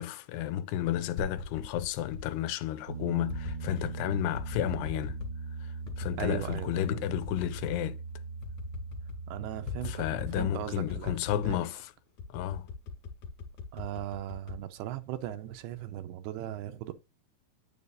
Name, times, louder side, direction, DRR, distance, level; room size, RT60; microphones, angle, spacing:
voice 1, 0.0-5.2 6.0-8.0 9.8-11.9 12.3-12.7, left 12 dB, 80° left, 2.6 m, -32 dB
sound 1, 1.2-2.3 3.3-3.9 4.4-5.4 5.9-6.6 7.1-7.8 8.1-8.2 8.4-9.2 9.7-10.6 10.9-11.6 12.2-15.3 15.7-16.1, left 5 dB, 55° left, 2.9 m, -40 dB
Piano, 2.9-10.9, right 4 dB, 35° right, 1.0 m, -40 dB
voice 2, 6.2-7.1 9.3-11.2 11.5-11.7 13.7-16.9, right 12 dB, 80° right, 2.5 m, -38 dB
8.8 x 7.0 x 2.4 m
omnidirectional pair, 4.8 m